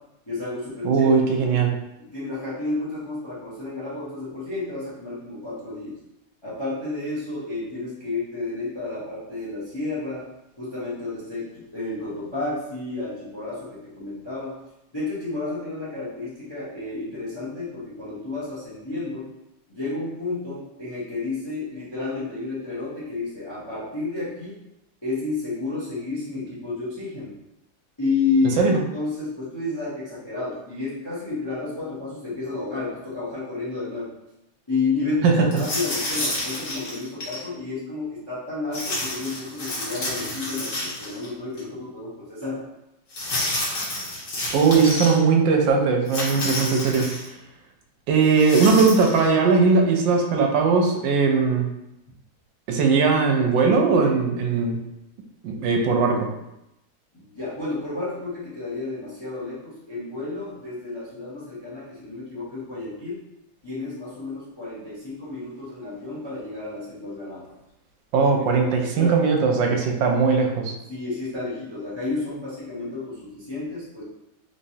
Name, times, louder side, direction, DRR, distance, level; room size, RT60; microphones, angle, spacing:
voice 1, 0.3-1.1 2.0-5.9 6.4-10.2 10.6-14.6 14.9-19.3 19.7-24.6 25.0-27.3 28.0-34.1 34.7-42.6 57.1-63.2 63.6-67.4 68.6-69.2 70.9-74.0, left 3 dB, 30° left, -9 dB, 0.4 m, -31 dB
voice 2, 0.8-1.7 28.6-28.8 35.2-35.3 44.5-47.1 48.1-51.6 52.7-54.8 55.4-56.3 68.1-70.7, right 5 dB, 75° right, 2 dB, 1.2 m, -19 dB
sound 1, 35.5-37.4 38.7-41.3 41.6-41.7 43.1-45.2 46.1-47.3 48.2-49.2, left 1 dB, 55° left, 1.3 m, -30 dB
3.4 x 3.1 x 2.7 m, 0.87 s
omnidirectional pair, 2.2 m